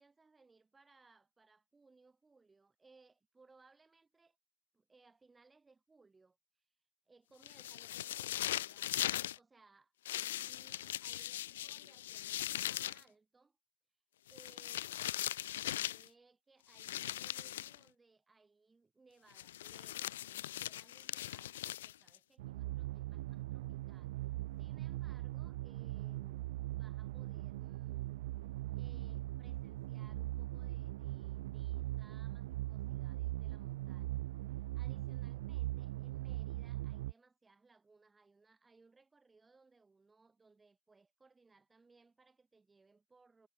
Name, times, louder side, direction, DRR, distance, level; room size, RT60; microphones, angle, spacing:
voice 1, 0.0-4.4 4.7-6.4 7.1-13.6 14.3-14.9 15.6-28.2 28.7-43.5, right 3 dB, 15° right, 6.8 m, -67 dB
sound 1, 7.4-9.4 10.0-13.0 14.3-16.1 16.7-17.8 19.3-22.2, left 13 dB, 65° left, 0.4 m, -40 dB
sound 2, 22.4-37.1, right 17 dB, 60° right, 0.4 m, -40 dB
figure-of-eight pair, 85°, 0 cm